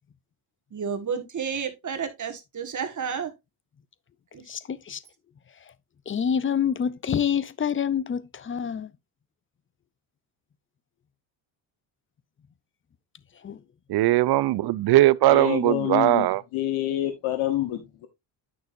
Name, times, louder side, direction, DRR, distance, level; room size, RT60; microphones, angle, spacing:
voice 1, 0.7-3.3 4.3-4.4, right 6 dB, 35° right, 1.7 m, -31 dB
voice 2, 4.5-5.0 6.1-8.9 13.4-13.6, left 8 dB, 25° left, 0.6 m, -27 dB
voice 3, 13.9-16.4, right 16 dB, 50° right, 0.6 m, -20 dB
voice 4, 15.3-18.1, left 13 dB, 75° left, 1.2 m, -27 dB
9.3 x 6.2 x 2.6 m
cardioid pair, 90°, 49 cm